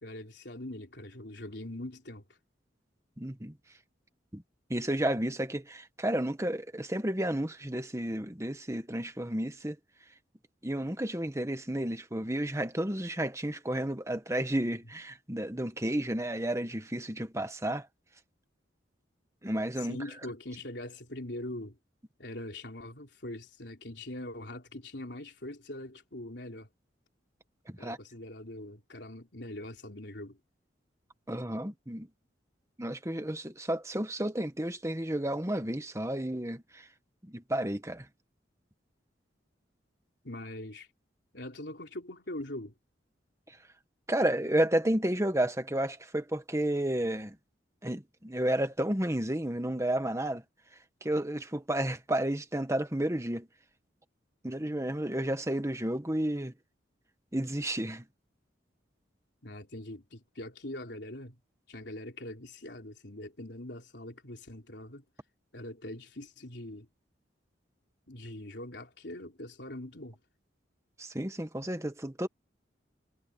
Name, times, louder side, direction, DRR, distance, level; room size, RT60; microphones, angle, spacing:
voice 1, 0.0-2.3 19.8-21.8 22.2-26.7 27.8-30.4 40.2-40.9 41.3-42.7 59.4-61.4 61.7-65.0 65.5-66.9 68.1-70.2, left 1 dB, 65° left, 3.9 m, -42 dB
voice 2, 3.2-3.5 4.3-4.4 4.7-9.8 10.6-17.9 19.4-20.0 27.7-28.0 31.3-32.1 32.8-36.9 37.2-38.1 44.1-47.3 47.8-50.4 51.0-53.5 54.4-56.5 57.3-58.0 71.0-72.3, right 1 dB, 15° right, 1.5 m, -31 dB
head